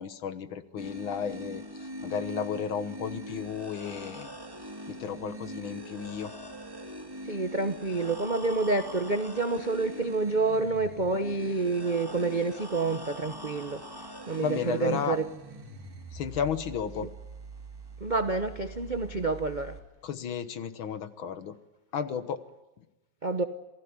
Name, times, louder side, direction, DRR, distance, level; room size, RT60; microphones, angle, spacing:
voice 1, 0.0-4.3 4.9-6.3 14.4-15.2 16.1-17.1 20.0-21.6 21.9-22.4, left 7 dB, 70° left, 2.0 m, -33 dB
sound 1, 0.8-19.8, right 1 dB, 10° right, 2.1 m, -42 dB
voice 2, 7.2-15.3 18.0-19.8 23.2-23.4, right 3 dB, 40° right, 0.6 m, -28 dB
27.5 x 17.0 x 9.7 m
omnidirectional pair, 2.4 m